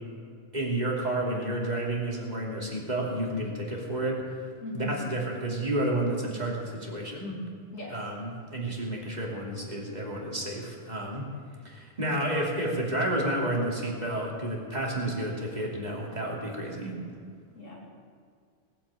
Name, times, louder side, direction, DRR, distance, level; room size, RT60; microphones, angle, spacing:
voice 1, 0.5-7.4 7.9-11.2 11.6-17.0, right 1 dB, 35° right, -2 dB, 3.0 m, -31 dB
voice 2, 4.6-5.1 7.7-8.0 17.5-17.8, left 2 dB, 85° left, -4 dB, 3.2 m, -38 dB
18.5 x 8.5 x 8.5 m, 2.2 s
omnidirectional pair, 1.3 m